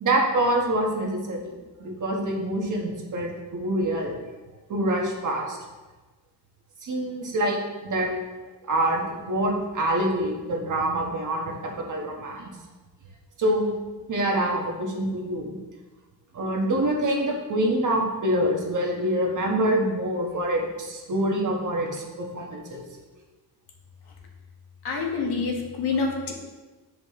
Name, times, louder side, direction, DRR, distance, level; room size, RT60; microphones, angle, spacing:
voice 1, 0.0-4.1 4.7-5.6 6.8-8.1 8.7-12.5 13.4-13.7 14.1-15.6 16.3-22.8, right 1 dB, 45° right, 0 dB, 1.4 m, -26 dB
voice 2, 24.8-26.3, left 4 dB, 65° left, 1 dB, 1.5 m, -27 dB
8.9 x 5.1 x 3.7 m, 1.2 s
wide cardioid pair, 150°, 41 cm